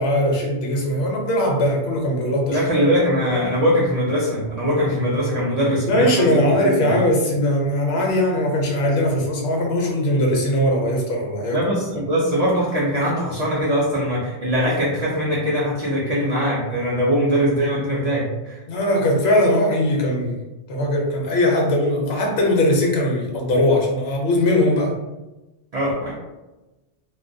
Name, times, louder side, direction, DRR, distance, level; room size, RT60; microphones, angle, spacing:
voice 1, 0.0-2.6 5.9-11.6 18.7-20.4 20.7-24.9, left 1 dB, 70° left, 0 dB, 0.8 m, -20 dB
voice 2, 2.5-7.1 11.5-18.6 25.7-26.2, equal, 65° right, -6 dB, 0.4 m, -21 dB
2.3 x 2.2 x 2.5 m, 1.1 s
omnidirectional pair, 1.2 m